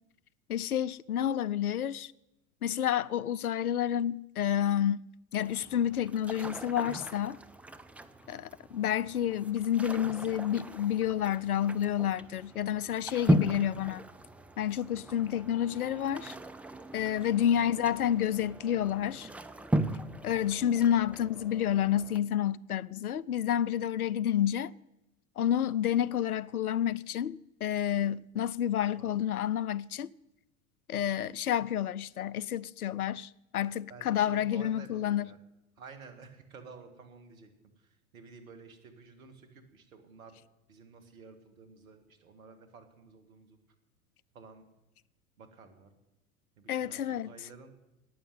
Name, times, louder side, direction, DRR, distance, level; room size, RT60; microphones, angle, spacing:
voice 1, 0.5-2.1 2.6-5.1 5.3-7.4 8.3-14.0 14.6-16.4 16.9-19.3 20.2-24.7 25.4-30.1 30.9-35.3 46.7-47.3, left 10 dB, 85° left, 0.5 m, -29 dB
sound 1, 5.4-22.2, equal, 5° right, 0.5 m, -37 dB
voice 2, 8.7-9.1 12.6-13.0 17.3-17.6 20.9-21.1 28.9-29.3 33.9-35.4 35.8-37.5 37.8-40.4 40.7-43.6 44.3-44.6 45.4-45.9 46.6-47.8, right 4 dB, 70° right, 2.3 m, -52 dB
11.5 x 9.5 x 9.3 m
figure-of-eight pair, 80°, 43 cm